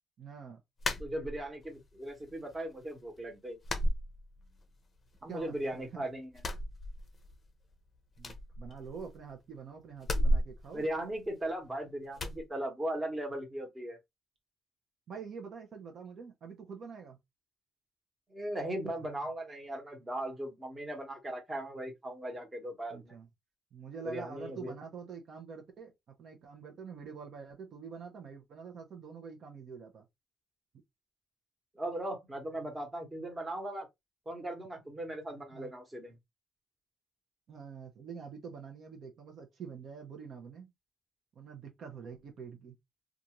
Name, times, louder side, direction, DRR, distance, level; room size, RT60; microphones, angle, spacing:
voice 1, 0.2-0.6 5.3-6.0 8.2-10.9 15.1-17.2 22.9-23.3 23.7-30.1 35.5-35.7 37.5-40.7 41.3-42.7, right 6 dB, 60° right, 0.7 m, -46 dB
sound 1, 0.8-1.7 2.1-2.8 3.0-3.2 3.6-4.8 5.1-5.9 6.3-7.5 7.7-7.8 8.2-9.3 10.0-11.7 12.2-12.4, equal, 35° left, 0.6 m, -34 dB
voice 2, 1.0-3.6 5.2-6.4 10.7-14.0 18.3-23.2 24.0-24.7 31.7-33.9 34.3-36.2, right 1 dB, 20° right, 1.2 m, -38 dB
2.5 x 2.4 x 2.9 m
cardioid pair, 110°, 0 cm